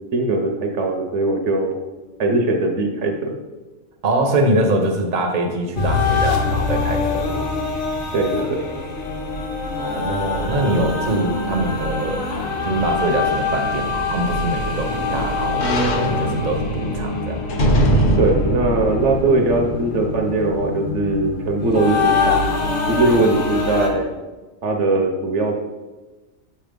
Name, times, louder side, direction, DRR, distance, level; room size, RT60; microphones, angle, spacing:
voice 1, 0.1-1.8 2.2-3.3 8.1-8.6 18.2-22.4 22.9-24.1 24.6-25.6, right 2 dB, 65° right, 2 dB, 1.0 m, -20 dB
voice 2, 4.0-7.4 9.8-12.2 12.6-15.7 16.2-17.5, right 1 dB, 40° right, 3 dB, 0.8 m, -23 dB
sound 1, 5.8-23.9, left 4 dB, 80° left, 1.3 m, -24 dB
sound 2, 13.9-20.2 20.7-20.8, right 1 dB, 40° left, 0.7 m, -23 dB
6.9 x 3.4 x 5.1 m, 1.2 s
omnidirectional pair, 1.4 m